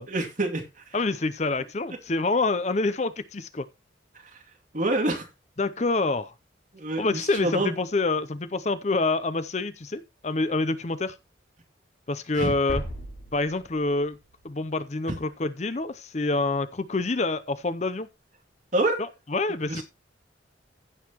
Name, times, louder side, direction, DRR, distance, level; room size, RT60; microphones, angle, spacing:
voice 1, 0.1-1.0 4.1-4.4 4.7-5.3 6.7-7.7 12.3-12.6 15.1-15.2 18.7-19.0 19.7-19.8, right 2 dB, 45° right, 2.6 m, -27 dB
voice 2, 0.9-3.7 5.6-6.3 7.0-11.1 12.1-12.8 13.3-14.2 14.4-18.1 19.0-19.8, left 3 dB, 35° left, 0.6 m, -27 dB
sound 1, 12.7-14.6, equal, 55° left, 5.2 m, -37 dB
15.5 x 6.5 x 3.0 m
head